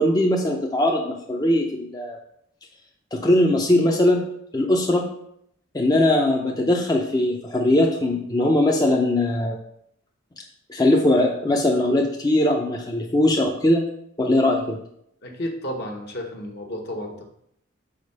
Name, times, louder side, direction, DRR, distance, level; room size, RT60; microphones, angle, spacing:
voice 1, 0.0-2.2 3.1-4.2 4.5-5.1 5.7-9.6 10.7-13.8 14.2-14.8, left 1 dB, 20° left, 0 dB, 0.5 m, -20 dB
voice 2, 15.2-17.3, equal, 55° left, 2 dB, 1.1 m, -32 dB
5.1 x 4.4 x 5.4 m, 0.72 s
head